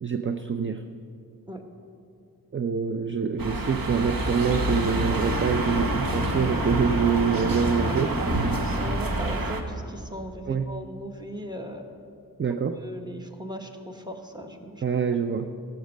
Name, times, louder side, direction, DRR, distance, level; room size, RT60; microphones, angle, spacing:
voice 1, 0.0-0.8 2.5-8.1 10.5-10.7 12.4-12.8 14.8-15.5, right 6 dB, 35° right, 7 dB, 0.5 m, -25 dB
sound 1, 3.4-9.6, right 1 dB, 65° right, 1.1 m, -27 dB
voice 2, 8.8-11.9 12.4-14.8, equal, 10° right, 4 dB, 1.1 m, -38 dB
14.5 x 6.2 x 6.4 m, 2.5 s
wide cardioid pair, 65°, 36 cm